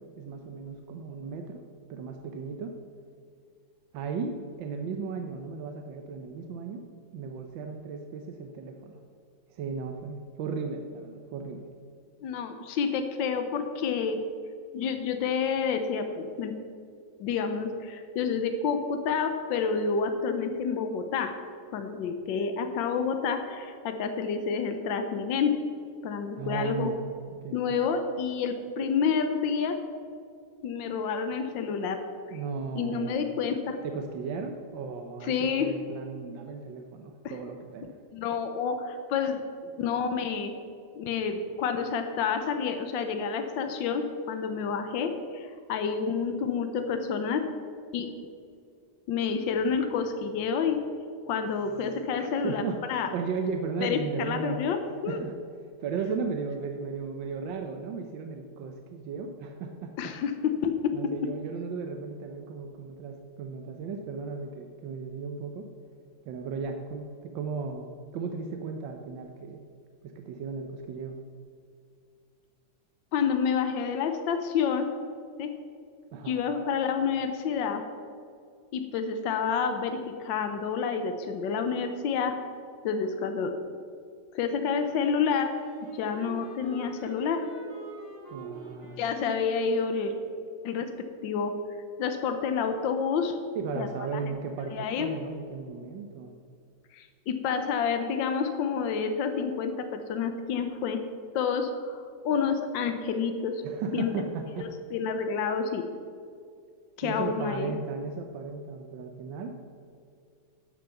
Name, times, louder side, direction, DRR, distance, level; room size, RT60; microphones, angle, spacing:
voice 1, 0.0-1.6 1.9-2.7 3.9-6.8 7.1-9.0 9.5-11.7 26.4-27.0 27.4-27.8 32.3-33.3 33.8-38.0 52.1-54.6 55.1-60.1 60.9-65.7 66.2-67.9 68.1-69.6 70.0-71.2 76.1-76.4 88.3-89.0 93.5-96.3 103.6-104.7 107.0-109.6, right 5 dB, 85° right, 4 dB, 1.5 m, -36 dB
voice 2, 12.2-14.2 14.7-16.5 17.2-21.3 21.7-25.6 26.0-26.9 27.5-29.8 30.6-32.0 32.3-32.4 32.8-33.8 35.2-35.7 38.1-40.5 40.9-47.5 47.9-48.1 49.1-50.8 51.3-52.6 52.9-53.1 53.8-55.2 60.0-60.9 73.1-74.9 75.4-75.5 76.3-77.8 78.7-82.4 82.8-83.5 84.3-85.6 85.9-87.5 89.0-90.1 90.6-90.9 91.2-91.5 92.0-93.3 93.7-93.9 94.7-95.1 96.9-101.0 101.3-103.6 103.9-104.1 104.9-105.8 107.0-107.7, left 6 dB, 80° left, 7 dB, 1.5 m, -29 dB
Wind instrument woodwind instrument, 85.2-90.3, right 3 dB, 30° left, 3.7 m, -45 dB
11.5 x 6.1 x 7.0 m, 2.3 s
omnidirectional pair, 2.0 m